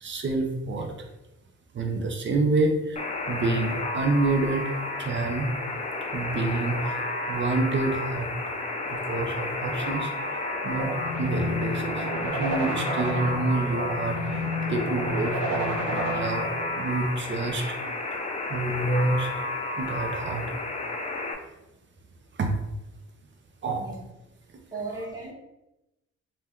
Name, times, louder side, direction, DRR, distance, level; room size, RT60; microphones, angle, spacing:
voice 1, 0.0-1.1 1.7-3.0 3.3-5.7 6.1-7.0 7.3-8.3 8.9-10.1 10.6-14.4 14.7-16.5 16.8-17.9 18.5-19.5 19.8-20.4 22.4-22.5 23.6-23.9, right 2 dB, 40° right, 4 dB, 0.6 m, -28 dB
Alarm, 3.0-21.3, left 2 dB, 25° left, 0.4 m, -32 dB
sound 1, 10.8-16.8, equal, 90° right, 0.5 m, -31 dB
voice 2, 24.7-25.3, right 3 dB, 10° right, -5 dB, 1.3 m, -35 dB
2.7 x 2.2 x 3.6 m, 0.93 s
cardioid pair, 90°, 30 cm